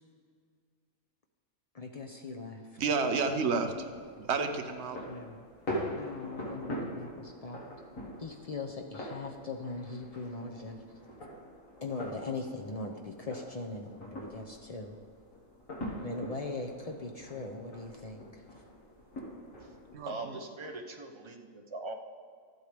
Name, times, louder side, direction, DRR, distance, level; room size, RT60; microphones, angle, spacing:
voice 1, 1.7-2.7 5.1-5.5 5.9-7.6 8.2-10.8 11.8-15.0 16.0-18.2, left 3 dB, 40° left, 2 dB, 0.5 m, -40 dB
voice 2, 2.8-3.9 4.2-5.0 19.9-20.4, right 4 dB, 60° right, 6 dB, 1.0 m, -30 dB
sound 1, 3.6-19.9, equal, 75° left, 2.1 m, -43 dB
voice 3, 20.1-21.9, right 2 dB, 30° right, 3 dB, 0.7 m, -41 dB
13.0 x 8.1 x 3.4 m, 2.1 s
omnidirectional pair, 1.4 m